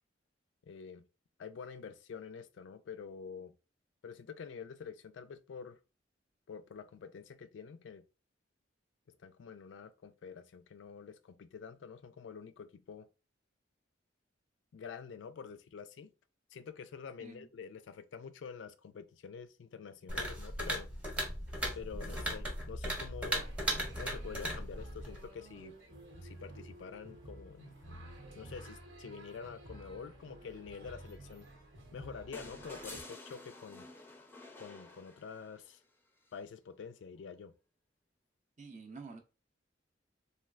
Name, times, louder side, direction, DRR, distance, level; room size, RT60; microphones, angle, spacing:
voice 1, 0.6-1.0 1.4-3.5 4.0-5.8 6.5-8.0 9.2-13.1 14.7-16.1 16.5-20.9 21.7-23.5 24.0-25.7 26.2-27.8 28.4-31.5 31.9-33.9 34.6-35.8 36.3-37.5, left 6 dB, 75° left, 0.3 m, -47 dB
sound 1, 20.1-25.3, equal, 10° right, 0.8 m, -37 dB
sound 2, 23.3-33.0, right 1 dB, 70° right, 0.9 m, -52 dB
sound 3, 32.3-35.7 37.2-37.3, left 2 dB, 10° left, 0.4 m, -50 dB
voice 2, 38.6-39.2, right 4 dB, 40° right, 0.6 m, -48 dB
3.2 x 2.3 x 2.3 m
head